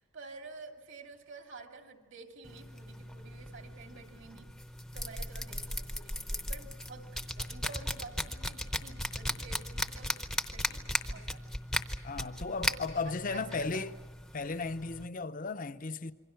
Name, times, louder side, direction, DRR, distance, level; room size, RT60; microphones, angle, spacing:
voice 1, 0.0-4.5 4.9-11.5 12.6-13.9, right 3 dB, 60° right, 2.5 m, -50 dB
sound 1, 2.4-15.1, left 1 dB, ahead, 0.7 m, -37 dB
voice 2, 12.0-13.9 14.3-16.1, left 4 dB, 40° left, 0.7 m, -35 dB
27.0 x 24.5 x 5.8 m
head